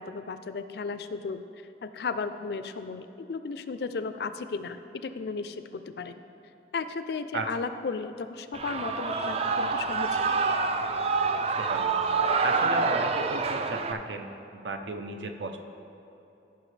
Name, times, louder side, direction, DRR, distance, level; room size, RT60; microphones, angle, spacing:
voice 1, 0.0-1.4 1.8-6.1 6.7-10.4, left 4 dB, 60° left, 11 dB, 0.4 m, -35 dB
Shout / Cheering, 8.5-13.9, right 4 dB, 35° right, 0.3 m, -27 dB
voice 2, 11.4-11.9 12.4-15.6, right 3 dB, 80° right, 6 dB, 0.6 m, -35 dB
14.0 x 5.8 x 3.3 m, 3.0 s
head